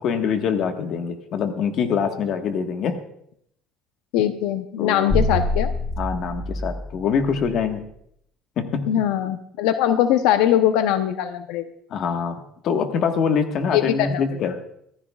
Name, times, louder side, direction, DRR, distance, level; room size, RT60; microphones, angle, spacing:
voice 1, 0.0-3.0 4.8-5.3 6.0-7.8 8.6-8.8 11.9-14.6, left 6 dB, 45° left, 5 dB, 1.4 m, -24 dB
voice 2, 4.1-5.7 8.9-11.7 13.7-14.2, left 11 dB, 85° left, 8 dB, 0.7 m, -21 dB
sound 1, 5.1-7.5, left 1 dB, 5° left, 1.2 m, -26 dB
24.5 x 15.0 x 2.4 m, 0.72 s
cardioid pair, 170°, 0 cm